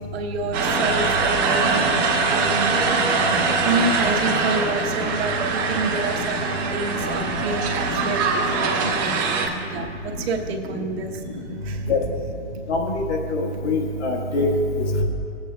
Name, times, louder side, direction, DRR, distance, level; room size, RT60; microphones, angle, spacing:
voice 1, 0.1-11.2 11.6-11.9, right 3 dB, 55° right, 2 dB, 1.0 m, -29 dB
sound 1, 0.5-9.5, right 4 dB, 20° right, 0.7 m, -23 dB
voice 2, 12.7-14.5, left 3 dB, 65° left, 0 dB, 1.5 m, -24 dB
18.5 x 8.2 x 2.3 m, 2.7 s
hypercardioid pair, 160°, 37 cm